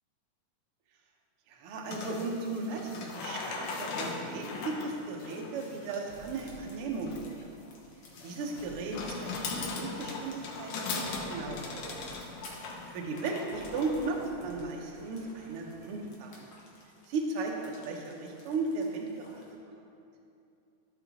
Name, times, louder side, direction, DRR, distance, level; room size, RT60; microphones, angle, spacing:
voice 1, 1.5-7.3 8.2-11.8 12.9-16.5 17.1-19.4, right 3 dB, 80° right, 0 dB, 1.2 m, -36 dB
sound 1, 1.8-14.3, left 3 dB, 75° left, 1.4 m, -39 dB
sound 2, 5.1-19.5, left 2 dB, 55° left, 1.3 m, -58 dB
sound 3, 6.1-7.8 8.5-12.7 13.5-16.0, right 3 dB, 50° right, 2.2 m, -53 dB
13.0 x 4.9 x 4.1 m, 2.7 s
omnidirectional pair, 3.9 m